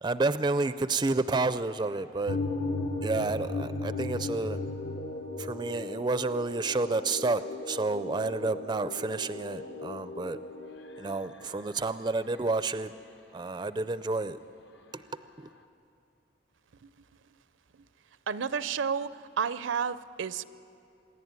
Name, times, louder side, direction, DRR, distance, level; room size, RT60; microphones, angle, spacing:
voice 1, 0.0-2.4 3.0-4.6 5.4-7.4 7.7-10.4 11.0-12.9 13.3-14.4 14.9-15.0 15.4-15.5, right 3 dB, 20° right, 13 dB, 0.4 m, -30 dB
sound 1, 2.3-11.7, left 2 dB, 65° left, 1.1 m, -36 dB
voice 2, 18.3-19.1 19.4-20.4, right 6 dB, 80° right, 15 dB, 0.5 m, -30 dB
26.0 x 11.0 x 9.6 m, 2.6 s
head